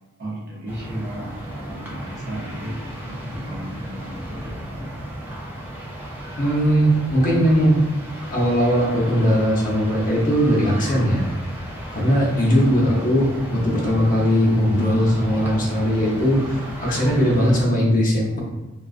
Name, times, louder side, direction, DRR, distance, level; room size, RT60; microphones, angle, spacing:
voice 1, 0.2-5.0 13.2-13.6, right 1 dB, 55° right, -5 dB, 0.8 m, -35 dB
sound 1, 0.7-17.6, right 1 dB, 10° right, 0.4 m, -34 dB
voice 2, 6.4-7.8 8.3-11.2 11.9-18.4, equal, 40° left, -3 dB, 0.6 m, -19 dB
2.3 x 2.3 x 2.3 m, 1.1 s
head